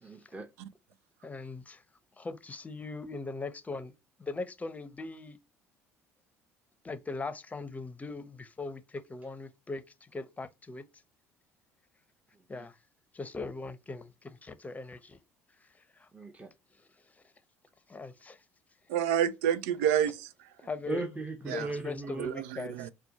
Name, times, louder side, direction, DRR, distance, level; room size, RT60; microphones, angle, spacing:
voice 1, 0.0-0.5 12.3-12.7 16.1-16.5 20.9-22.4, right 2 dB, 20° right, 0.8 m, -38 dB
voice 2, 1.2-1.8 2.2-3.9 4.2-5.4 6.8-10.8 12.5-12.8 13.1-15.2 16.0-16.1 17.9-18.4 20.6-21.0 21.5-22.8, left 3 dB, 20° left, 0.7 m, -40 dB
voice 3, 18.9-20.5 21.5-21.7 22.2-22.9, right 9 dB, 80° right, 0.4 m, -29 dB
4.3 x 2.2 x 4.1 m
hypercardioid pair, 65°, 8 cm